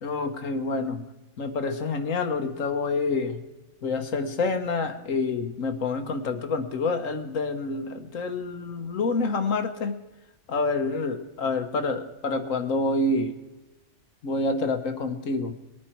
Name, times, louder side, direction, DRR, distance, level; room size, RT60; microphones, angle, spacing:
voice 1, 0.0-1.0 1.4-3.4 3.8-9.9 10.5-13.3 14.2-15.5, left 3 dB, 85° left, 6 dB, 1.6 m, -27 dB
21.5 x 9.4 x 4.5 m, 1.0 s
omnidirectional pair, 1.3 m